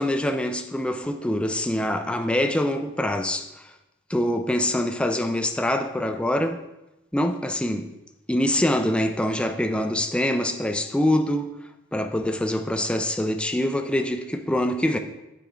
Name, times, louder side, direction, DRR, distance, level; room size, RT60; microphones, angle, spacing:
voice 1, 0.0-3.7 4.1-6.6 7.1-7.9 8.3-11.5 11.9-15.0, left 1 dB, 5° left, 0.4 m, -24 dB
7.3 x 7.3 x 3.4 m
head